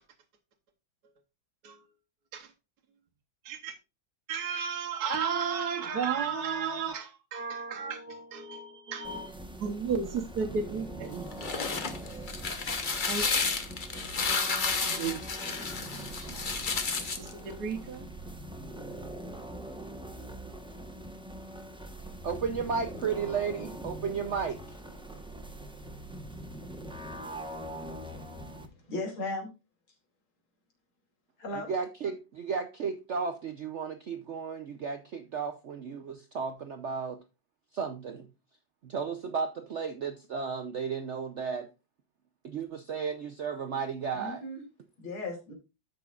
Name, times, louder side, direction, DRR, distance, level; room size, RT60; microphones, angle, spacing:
voice 1, 3.4-3.8 4.3-11.3 12.8-13.3 13.9-14.1 14.7-15.6 16.2-18.0, right 6 dB, 60° right, 1.3 m, -34 dB
sound 1, 9.0-28.7, right 1 dB, 5° right, 0.4 m, -42 dB
sound 2, 11.2-17.3, left 4 dB, 40° left, 0.7 m, -31 dB
voice 2, 22.2-24.8 31.7-37.2 37.7-38.3 38.8-41.7 42.4-44.4, right 6 dB, 85° right, 0.6 m, -34 dB
voice 3, 28.7-29.5 31.4-31.7 44.1-44.6 45.0-45.5, left 2 dB, 90° left, 3.4 m, -36 dB
13.0 x 6.1 x 2.4 m
omnidirectional pair, 2.2 m